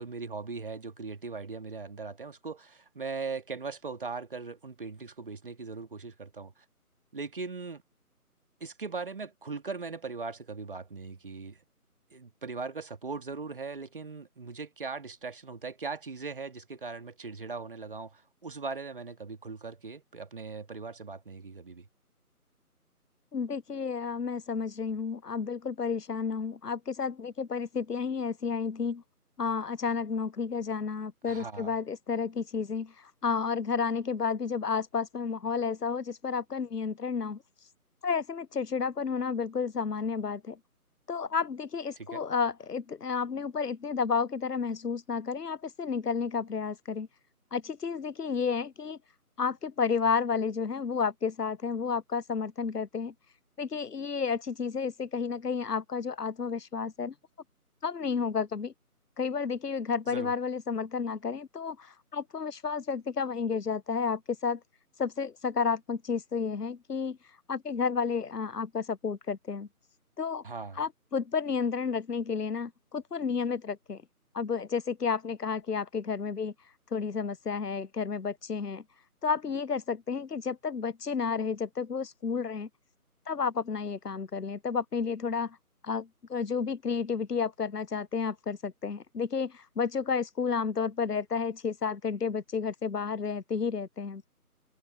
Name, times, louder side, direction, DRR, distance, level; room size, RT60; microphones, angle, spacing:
voice 1, 0.0-6.6 7.1-7.8 8.6-11.6 12.1-21.9 31.2-31.7 42.0-42.2 60.1-60.3 70.4-70.8, right 4 dB, 35° right, 2.1 m, -39 dB
voice 2, 23.3-29.0 29.4-37.4 38.0-40.6 41.1-47.1 47.5-49.0 49.4-53.1 53.6-57.1 57.8-58.7 59.2-64.6 65.0-67.2 67.5-69.7 70.2-70.4 70.8-74.0 74.3-76.5 76.9-78.8 79.2-82.7 83.3-85.6 85.8-94.2, left 5 dB, 90° left, 0.8 m, -31 dB
figure-of-eight pair, 160°, 46 cm